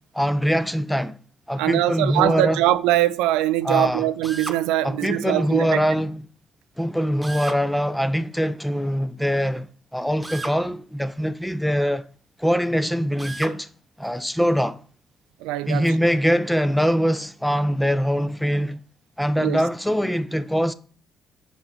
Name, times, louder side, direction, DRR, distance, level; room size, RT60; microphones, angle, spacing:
voice 1, 0.1-1.1 1.5-2.6 3.6-4.0 4.8-6.2 6.8-9.7 9.9-12.1 12.4-13.7 14.0-14.8 15.7-18.8 19.2-20.7, equal, 5° left, 0.7 m, -23 dB
voice 2, 1.6-5.8 15.4-15.9 19.4-19.6, right 14 dB, 90° right, 0.4 m, -22 dB
Drill, 4.2-4.6 7.2-7.6 10.2-10.6 13.2-13.6, right 2 dB, 15° right, 1.4 m, -33 dB
6.0 x 5.4 x 5.0 m
supercardioid pair, 60°, 0 cm